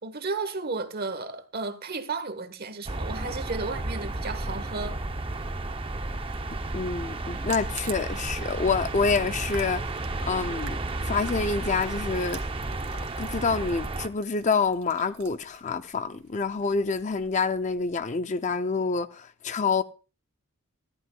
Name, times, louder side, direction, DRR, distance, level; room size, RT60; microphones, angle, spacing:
voice 1, 0.0-5.0, right 3 dB, 45° right, 1.2 m, -33 dB
sound 1, 2.9-14.1, right 2 dB, 25° right, 0.7 m, -32 dB
voice 2, 6.7-9.8 10.3-10.8 11.0-12.4 13.2-19.8, left 4 dB, 30° left, 0.5 m, -27 dB
sound 2, 7.3-18.0, right 9 dB, 85° right, 2.1 m, -49 dB
19.0 x 14.0 x 2.3 m
head